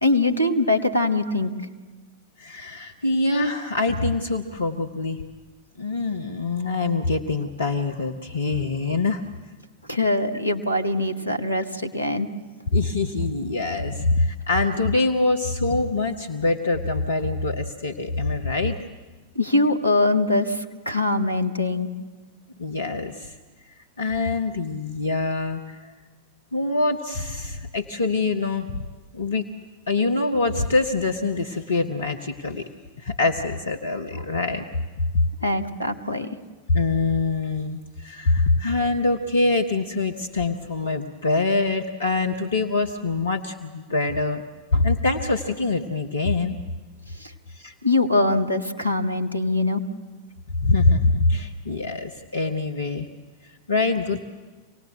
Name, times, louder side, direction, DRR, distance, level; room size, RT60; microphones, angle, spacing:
voice 1, 0.0-1.5 9.9-12.3 19.3-21.9 35.4-36.3 47.2-47.3 47.8-49.8, left 2 dB, 85° left, 6 dB, 1.4 m, -22 dB
voice 2, 2.4-5.2 5.8-9.2 12.7-18.8 22.6-23.4 24.0-25.9 26.5-28.8 29.1-29.5 29.9-32.7 33.0-34.6 35.1-35.5 36.7-44.4 44.7-46.6 47.5-47.7 50.6-53.1 53.4-54.2, left 3 dB, 70° left, 5 dB, 1.1 m, -24 dB
26.5 x 18.5 x 7.9 m, 1.3 s
figure-of-eight pair, 90°, 0 cm